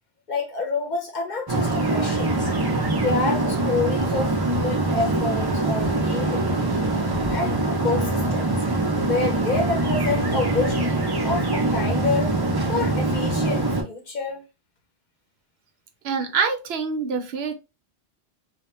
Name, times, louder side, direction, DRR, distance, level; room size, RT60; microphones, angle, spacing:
voice 1, 0.3-2.5 2.9-6.9 7.3-8.5 9.0-10.9 11.2-12.3 12.6-14.4, left 4 dB, 50° left, 0.7 m, -28 dB
sound 1, 1.5-13.8, right 2 dB, 40° right, 0.3 m, -23 dB
voice 2, 16.0-17.5, right 5 dB, 75° right, 0.8 m, -25 dB
2.2 x 2.1 x 2.9 m
omnidirectional pair, 1.1 m